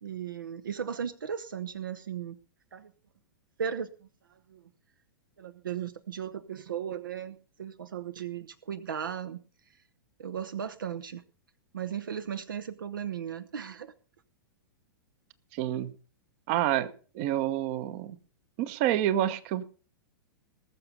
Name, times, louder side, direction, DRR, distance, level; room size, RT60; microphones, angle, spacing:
voice 1, 0.0-2.4 2.7-2.9 3.6-4.6 5.4-9.4 10.2-11.2 11.7-13.9, right 8 dB, 65° right, 12 dB, 0.8 m, -36 dB
voice 2, 15.5-15.9 16.5-18.2 18.6-19.6, right 12 dB, 40° right, 16 dB, 1.0 m, -28 dB
19.5 x 6.8 x 5.3 m, 0.38 s
figure-of-eight pair, 100°, 12 cm